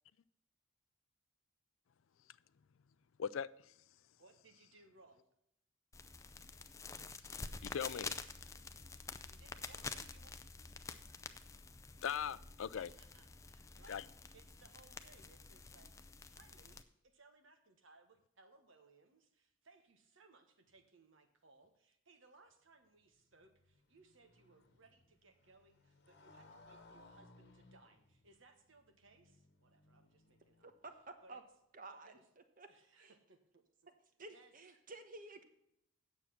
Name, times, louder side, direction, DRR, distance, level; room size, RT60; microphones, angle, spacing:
voice 1, 3.2-3.7 7.6-8.2 12.0-12.9 13.9-14.0, left 7 dB, 75° left, 0.4 m, -40 dB
voice 2, 4.2-5.3 9.2-10.3 12.7-30.7 31.2-31.4 31.9-32.2 32.7-33.6 34.3-34.9, right 3 dB, 70° right, 1.5 m, -66 dB
sound 1, 5.9-16.8, left 4 dB, 15° left, 0.4 m, -49 dB
Motorcycle, 22.9-31.0, left 2 dB, 50° left, 1.3 m, -64 dB
voice 3, 31.7-32.2 32.6-32.7 33.0-33.1 34.2-35.4, right 2 dB, 40° right, 1.1 m, -52 dB
9.2 x 7.2 x 5.8 m
head